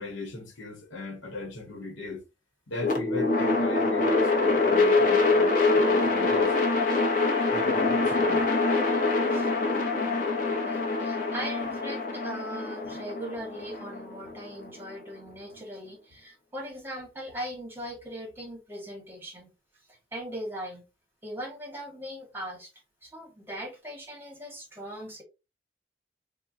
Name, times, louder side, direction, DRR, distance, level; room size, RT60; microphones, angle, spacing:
voice 1, 0.0-2.2 2.7-6.5 7.5-8.4 10.0-10.1, left 2 dB, 85° left, 0.9 m, -37 dB
sound 1, 2.8-14.9, left 3 dB, 45° left, 0.6 m, -25 dB
voice 2, 9.9-19.5 19.9-20.8 21.2-22.7 23.0-25.2, equal, 10° right, 1.0 m, -40 dB
3.7 x 2.0 x 2.5 m
head